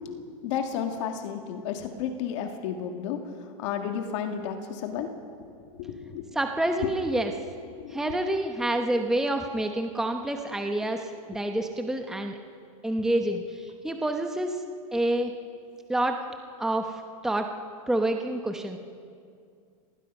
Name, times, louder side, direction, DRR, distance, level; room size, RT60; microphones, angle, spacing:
voice 1, 0.4-5.1 5.8-6.3 6.8-7.0 7.8-8.2, left 8 dB, 55° left, 5 dB, 1.9 m, -32 dB
voice 2, 6.3-7.3 7.9-12.4 12.8-14.6 14.9-15.3 15.9-16.2 16.6-17.5 17.9-18.8, right 1 dB, 5° right, 5 dB, 0.9 m, -28 dB
25.5 x 19.0 x 5.5 m, 2.3 s
supercardioid pair, 145°, 18 cm